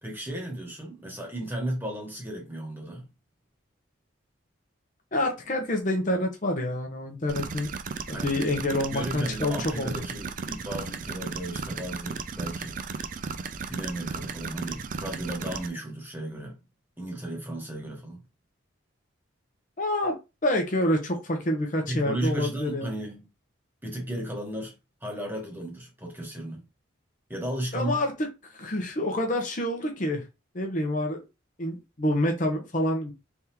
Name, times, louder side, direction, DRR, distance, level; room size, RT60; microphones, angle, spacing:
voice 1, 0.0-3.1 8.1-8.3 8.9-12.8 13.7-16.6 17.0-18.2 21.9-23.3 23.8-24.7 25.0-26.7 27.3-28.0, right 1 dB, 10° right, 1.1 m, -34 dB
voice 2, 5.1-7.7 8.1-9.9 19.8-20.1 20.4-22.9 27.7-28.1 28.4-30.2 30.5-31.2 31.6-33.1, left 1 dB, 40° left, 0.7 m, -27 dB
sound 1, 7.3-15.7, right 5 dB, 40° right, 0.3 m, -35 dB
3.5 x 3.5 x 2.9 m
head